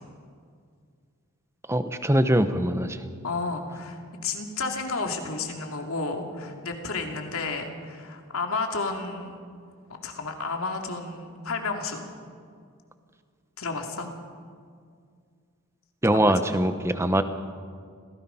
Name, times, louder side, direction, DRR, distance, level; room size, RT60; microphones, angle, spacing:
voice 1, 1.7-3.0 16.0-17.2, right 1 dB, 10° right, 10 dB, 0.9 m, -22 dB
voice 2, 3.2-9.4 10.0-12.0 13.6-14.1 16.1-16.5, left 3 dB, 75° left, 3 dB, 2.5 m, -32 dB
26.5 x 17.5 x 5.7 m, 2.1 s
head